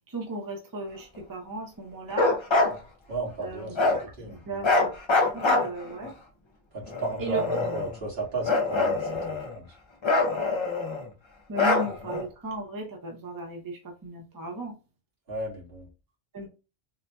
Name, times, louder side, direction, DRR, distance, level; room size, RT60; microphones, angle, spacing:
voice 1, 0.0-2.3 3.4-4.9 5.3-6.1 7.2-7.6 11.5-14.7 16.3-16.5, right 1 dB, 25° right, 1 dB, 0.7 m, -36 dB
Bark, 2.1-2.8 3.8-4.0 4.6-6.1 6.9-8.0 8.4-9.6 10.0-11.1 11.5-12.2, left 3 dB, 35° left, 0.5 m, -24 dB
voice 2, 3.1-4.6 6.7-9.8 15.3-15.9, right 3 dB, 70° right, -4 dB, 2.0 m, -34 dB
3.8 x 2.7 x 2.2 m, 0.31 s
omnidirectional pair, 1.1 m